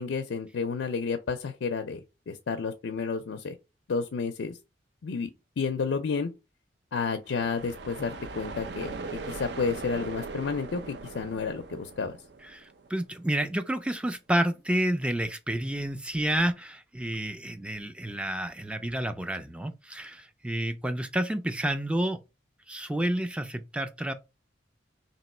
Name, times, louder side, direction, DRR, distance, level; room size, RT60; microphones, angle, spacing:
voice 1, 0.0-2.0 2.3-3.5 3.9-4.6 5.0-5.3 5.6-6.3 6.9-12.2, left 5 dB, 80° left, 0.4 m, -31 dB
sound 1, 7.3-13.0, right 3 dB, 65° right, 0.5 m, -40 dB
voice 2, 12.4-22.2 22.7-24.1, right 1 dB, 5° right, 0.3 m, -30 dB
3.0 x 2.9 x 4.2 m
head